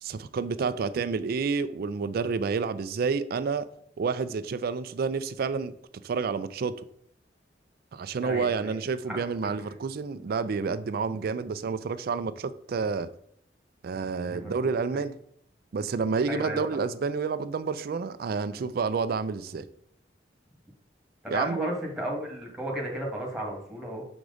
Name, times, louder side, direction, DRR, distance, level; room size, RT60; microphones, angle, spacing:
voice 1, 0.0-3.6 4.0-5.7 6.0-6.7 7.9-13.1 13.8-15.1 15.7-19.7 21.3-21.7, right 5 dB, 60° right, 0.4 m, -29 dB
voice 2, 8.2-8.8 9.1-9.2 14.2-15.0 16.3-16.8 21.2-24.0, equal, 5° right, 1.7 m, -34 dB
6.0 x 4.9 x 3.9 m
head